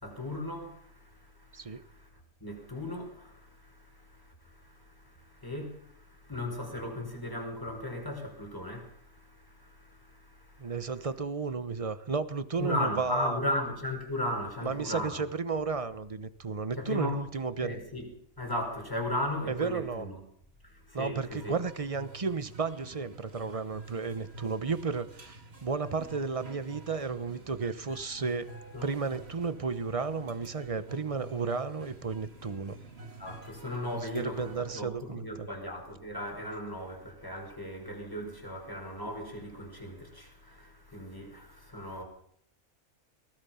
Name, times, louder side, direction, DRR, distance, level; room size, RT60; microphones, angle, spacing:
voice 1, 0.0-2.1 2.4-10.7 12.6-15.2 16.8-17.2 17.6-18.1 18.4-20.2 20.6-21.6 28.7-28.9 33.2-42.0, left 1 dB, 15° left, 5.0 m, -37 dB
voice 2, 10.6-13.4 14.6-17.8 19.5-20.1 20.9-28.5 28.8-32.8 34.0-35.5, right 4 dB, 25° right, 0.9 m, -33 dB
sound 1, 21.4-34.8, right 2 dB, 45° right, 2.6 m, -49 dB
23.0 x 19.5 x 5.8 m
omnidirectional pair, 1.5 m